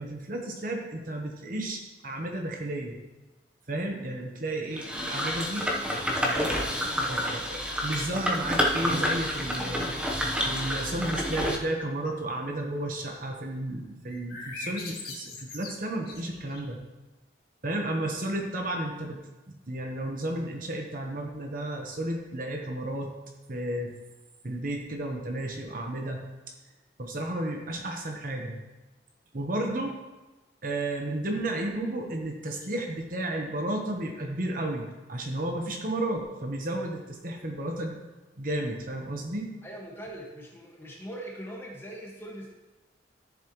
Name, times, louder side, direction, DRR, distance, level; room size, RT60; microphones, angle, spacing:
voice 1, 0.0-3.0 3.7-5.7 6.2-6.7 7.1-9.9 10.5-16.8 17.6-19.2 19.5-23.1 23.5-23.9 24.4-26.2 27.0-28.6 29.3-29.9 30.6-38.0 38.4-39.5, right 1 dB, 45° right, 2 dB, 1.1 m, -33 dB
sound 1, 4.8-11.6, equal, 5° right, 1.0 m, -29 dB
sound 2, 14.1-16.8, left 3 dB, 55° left, 2.2 m, -41 dB
voice 2, 39.6-42.5, right 1 dB, 15° left, -2 dB, 1.7 m, -41 dB
14.0 x 7.1 x 3.1 m, 1.1 s
head